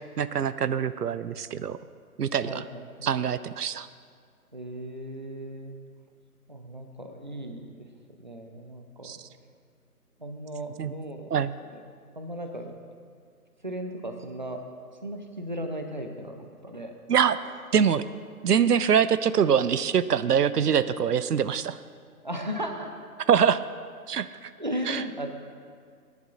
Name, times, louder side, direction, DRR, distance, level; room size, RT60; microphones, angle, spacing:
voice 1, 0.2-1.8 2.2-2.6 3.0-3.9 9.0-9.2 10.8-10.9 11.3-11.5 17.1-17.4 17.7-18.0 18.4-21.8 23.3-23.6 24.1-24.5 24.9-25.0, right 8 dB, 90° right, 15 dB, 0.5 m, -24 dB
voice 2, 2.5-3.1 4.5-5.8 6.5-7.7 8.2-9.1 10.2-11.8 12.1-12.7 13.6-14.6 15.0-17.0 17.4-17.5 22.2-22.9 24.6-25.3, equal, 30° right, 5 dB, 0.5 m, -36 dB
17.5 x 10.5 x 2.5 m, 2.1 s
figure-of-eight pair, 160°, 46 cm